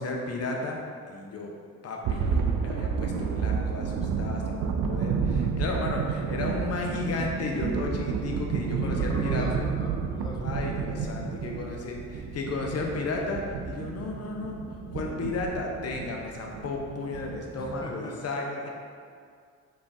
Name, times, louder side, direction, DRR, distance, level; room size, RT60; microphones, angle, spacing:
voice 1, 0.0-1.5 1.8-9.6 10.4-18.7, left 3 dB, 55° left, 0 dB, 0.8 m, -34 dB
sound 1, 2.0-17.8, right 6 dB, 75° right, 0.5 m, -30 dB
voice 2, 8.8-10.7 10.9-11.0 17.5-18.2, left 1 dB, 15° left, -1 dB, 0.5 m, -40 dB
5.2 x 3.4 x 2.8 m, 2.1 s
cardioid pair, 90°, 30 cm